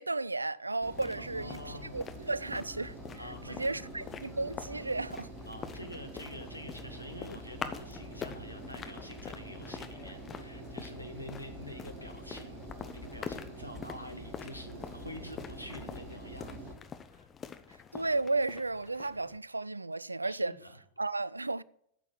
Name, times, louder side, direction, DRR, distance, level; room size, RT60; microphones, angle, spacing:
voice 1, 0.0-5.3 17.9-20.5 21.0-21.6, right 2 dB, 80° right, 0.3 m, -34 dB
sound 1, 0.8-19.4, left 7 dB, 25° left, 0.9 m, -46 dB
Engine, 0.8-16.7, right 1 dB, 45° right, 2.8 m, -46 dB
voice 2, 1.2-2.0 3.2-3.9 5.5-12.6 12.9-16.8 17.1-17.3 20.2-20.8, left 1 dB, 90° left, 1.4 m, -47 dB
9.0 x 7.5 x 7.5 m
figure-of-eight pair, 90°, 0 cm